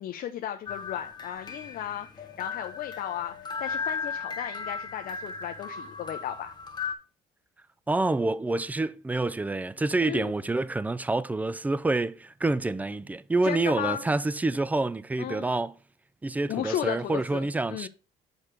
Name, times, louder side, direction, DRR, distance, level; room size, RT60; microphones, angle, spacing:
voice 1, 0.0-3.3 3.6-6.5 10.0-10.3 13.4-14.1 15.2-15.5 16.5-17.9, left 11 dB, 60° left, 0.6 m, -35 dB
sound 1, 0.7-6.9, left 5 dB, 25° left, 1.1 m, -36 dB
voice 2, 7.9-15.8 16.2-17.9, right 2 dB, 10° right, 0.3 m, -27 dB
6.5 x 4.5 x 5.0 m
cardioid pair, 110°, 17 cm